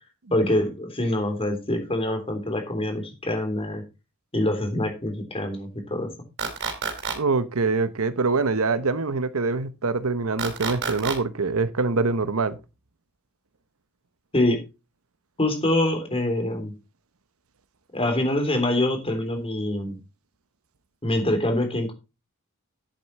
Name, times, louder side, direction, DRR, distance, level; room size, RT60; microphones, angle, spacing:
voice 1, 0.3-3.8 4.3-6.1 14.3-14.6 15.4-16.7 17.9-20.0 21.0-21.9, left 1 dB, 25° left, 3.2 m, -25 dB
sound 1, 6.4-7.1 10.4-11.1, right 5 dB, 55° right, 3.8 m, -28 dB
voice 2, 7.1-12.6, right 3 dB, 75° right, 1.0 m, -24 dB
10.5 x 8.3 x 4.2 m
head